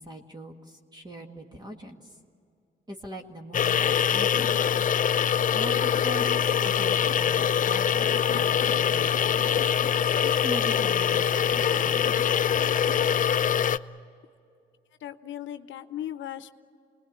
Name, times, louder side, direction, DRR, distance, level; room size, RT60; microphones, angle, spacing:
voice 1, 0.0-2.2 2.9-4.9 5.5-9.5 10.2-12.2, right 1 dB, 20° right, 2 dB, 1.9 m, -41 dB
sound 1, 3.5-13.8, left 8 dB, 40° left, 0.5 m, -24 dB
voice 2, 15.0-16.5, left 11 dB, 70° left, 11 dB, 0.8 m, -37 dB
26.5 x 20.5 x 8.9 m, 2.4 s
cardioid pair, 90°, 20 cm